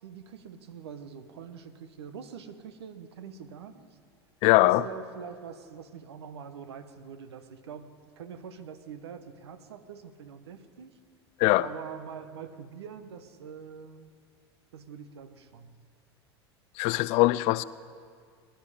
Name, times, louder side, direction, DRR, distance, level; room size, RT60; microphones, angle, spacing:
voice 1, 0.0-3.9 4.6-11.0 11.6-14.1 14.7-15.7, right 7 dB, 75° right, 1.0 m, -44 dB
voice 2, 4.4-4.8 11.4-11.7 16.8-17.6, left 19 dB, 50° left, 0.5 m, -21 dB
20.5 x 11.5 x 5.0 m
hypercardioid pair, 90°, 14 cm